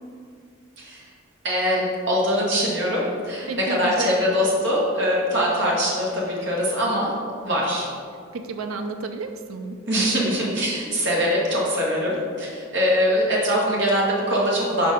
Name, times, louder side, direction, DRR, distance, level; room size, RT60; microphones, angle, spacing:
voice 1, 1.4-7.1 7.4-7.9 9.9-14.9, equal, 55° right, -4 dB, 1.6 m, -22 dB
voice 2, 3.5-4.1 8.3-9.8, right 4 dB, 80° right, 6 dB, 0.4 m, -31 dB
5.1 x 4.6 x 5.4 m, 2.2 s
head